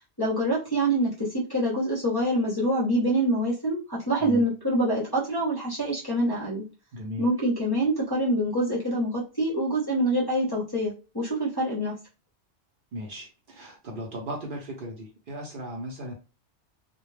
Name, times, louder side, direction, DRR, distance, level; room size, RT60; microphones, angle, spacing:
voice 1, 0.2-6.6 7.2-12.0, right 1 dB, 25° left, -4 dB, 0.6 m, -25 dB
voice 2, 6.9-7.3 12.9-16.1, equal, 55° right, 0 dB, 0.7 m, -37 dB
2.2 x 2.1 x 3.1 m, 0.33 s
omnidirectional pair, 1.2 m